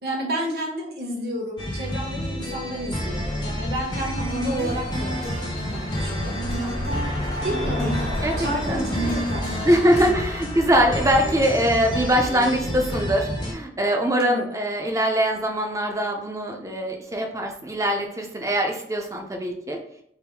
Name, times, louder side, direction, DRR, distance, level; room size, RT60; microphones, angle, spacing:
voice 1, 0.0-5.2 5.7-6.4 7.4-8.1 8.4-9.8 10.9-11.0 14.2-14.5, equal, 60° right, -2 dB, 1.2 m, -31 dB
sound 1, 1.6-13.5, equal, 25° left, 0.6 m, -30 dB
sound 2, 3.9-12.9, left 1 dB, 75° left, 1.4 m, -36 dB
sound 3, 4.2-10.1, equal, 55° left, 0.9 m, -33 dB
voice 2, 6.6-7.0 8.2-8.9 9.6-19.8, equal, 20° right, 2 dB, 0.5 m, -23 dB
3.5 x 2.6 x 4.6 m, 0.70 s
head